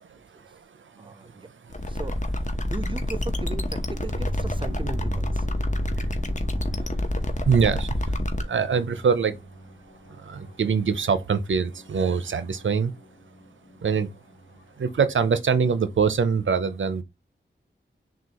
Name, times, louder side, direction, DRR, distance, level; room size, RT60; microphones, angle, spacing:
voice 1, 0.0-2.0 2.6-2.7 5.6-6.1 6.6-9.5 10.1-12.9 13.8-14.2 14.8-17.0, right 6 dB, 85° right, 0.6 m, -25 dB
voice 2, 1.0-1.5 1.9-5.5, right 3 dB, 25° right, 0.5 m, -38 dB
sound 1, 1.7-8.4, left 1 dB, 40° left, 0.9 m, -27 dB
sound 2, 3.8-15.9, right 2 dB, 85° left, 1.2 m, -41 dB
6.3 x 2.4 x 2.9 m
wide cardioid pair, 55°, 19 cm